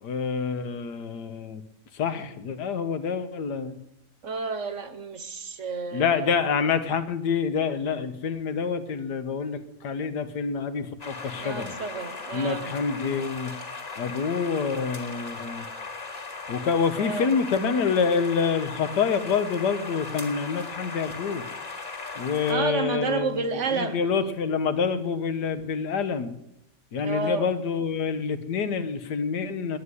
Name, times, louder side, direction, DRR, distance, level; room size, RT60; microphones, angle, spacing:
voice 1, 0.0-1.6 1.9-3.8 5.9-11.7 12.3-13.5 13.9-15.7 16.5-21.4 22.2-26.4 26.9-29.8, left 6 dB, 85° left, 10 dB, 1.6 m, -27 dB
voice 2, 4.2-6.3 11.3-12.7 16.9-17.3 22.5-24.0 27.0-27.5, right 4 dB, 55° right, 11 dB, 1.2 m, -30 dB
sound 1, 11.0-22.5, left 4 dB, 40° left, 2.7 m, -38 dB
10.0 x 9.9 x 9.6 m, 0.82 s
omnidirectional pair, 1.7 m